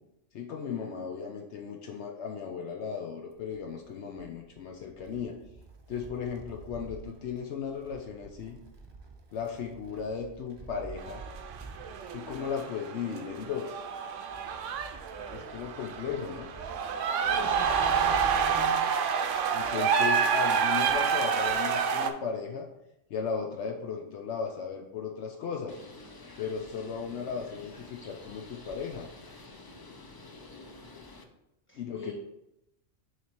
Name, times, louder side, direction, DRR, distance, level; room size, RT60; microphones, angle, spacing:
voice 1, 0.3-5.3 5.9-8.6 9.3-11.2 12.1-13.8 15.3-16.5 19.5-22.7 23.1-25.8 26.4-29.1 31.7-32.1, left 6 dB, 70° left, 1 dB, 0.9 m, -36 dB
Wind, 3.3-19.9 20.2-20.3 21.3-21.4, right 4 dB, 30° right, 0.5 m, -48 dB
sound 1, 11.0-22.1, right 6 dB, 85° right, 0.9 m, -28 dB
voice 2, 17.3-18.9 31.7-32.1, left 2 dB, 10° left, -3 dB, 1.6 m, -43 dB
Bird, 25.7-31.2, left 2 dB, 35° left, 0.3 m, -49 dB
6.5 x 3.4 x 4.4 m, 0.86 s
omnidirectional pair, 1.2 m